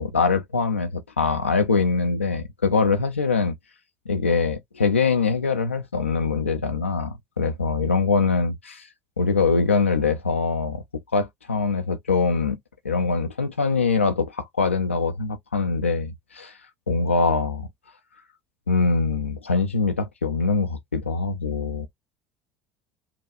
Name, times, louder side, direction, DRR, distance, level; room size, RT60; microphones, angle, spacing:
voice 1, 0.0-3.5 4.1-8.7 9.2-10.8 11.1-12.6 12.8-16.5 16.9-17.7 18.7-21.9, left 4 dB, 90° left, 0.4 m, -23 dB
5.7 x 2.3 x 2.5 m
figure-of-eight pair, 65°, 6 cm